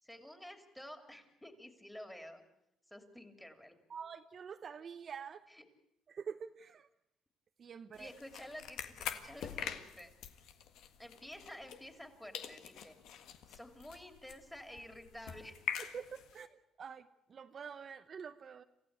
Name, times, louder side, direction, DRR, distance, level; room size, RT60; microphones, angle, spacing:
voice 1, 0.0-2.4 2.9-3.8 8.0-10.1 11.0-13.0 13.5-15.6, equal, 5° left, 6 dB, 3.1 m, -51 dB
voice 2, 3.9-5.5 6.1-6.9 7.6-8.1 15.8-18.6, right 6 dB, 45° right, 8 dB, 0.9 m, -47 dB
sound 1, 7.9-12.1 12.3-16.4, left 9 dB, 75° left, 1.7 m, -45 dB
28.0 x 15.5 x 8.3 m, 0.82 s
cardioid pair, 115°, 0 cm